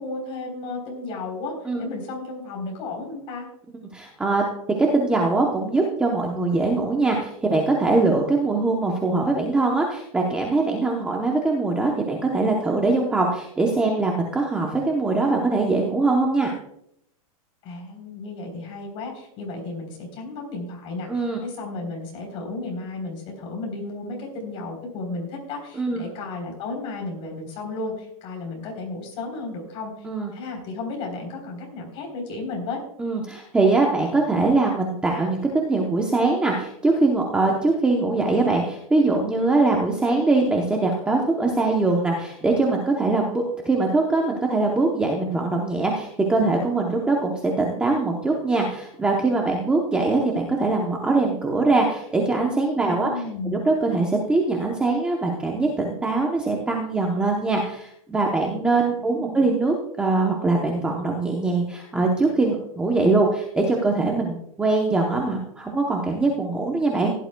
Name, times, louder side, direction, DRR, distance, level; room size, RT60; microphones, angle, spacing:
voice 1, 0.0-3.5 17.6-29.9 30.3-32.8 52.8-53.6 59.0-59.5, left 3 dB, 30° left, 1 dB, 3.6 m, -33 dB
voice 2, 3.9-4.4 4.7-16.5 21.1-21.4 25.8-26.0 30.0-30.3 33.0-53.1 53.5-67.1, right 3 dB, 5° right, 0 dB, 0.8 m, -22 dB
16.0 x 11.0 x 2.2 m, 0.73 s
supercardioid pair, 170°, 19 cm